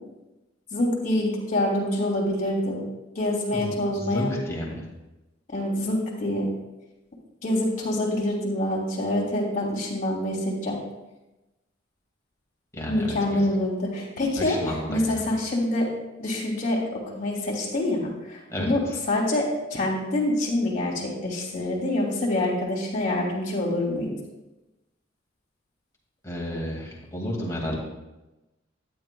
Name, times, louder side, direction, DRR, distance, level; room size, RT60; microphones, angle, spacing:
voice 1, 0.7-2.8 3.1-4.3 5.5-6.5 7.4-10.8 12.9-14.6 14.9-15.9 16.2-18.0 18.3-18.8 19.1-24.1, left 1 dB, 40° left, -3 dB, 2.8 m, -26 dB
voice 2, 3.5-4.9 12.7-13.5 14.4-15.2 18.5-19.0 26.2-27.8, equal, 15° left, -3 dB, 2.1 m, -32 dB
12.0 x 9.6 x 2.3 m, 1.0 s
head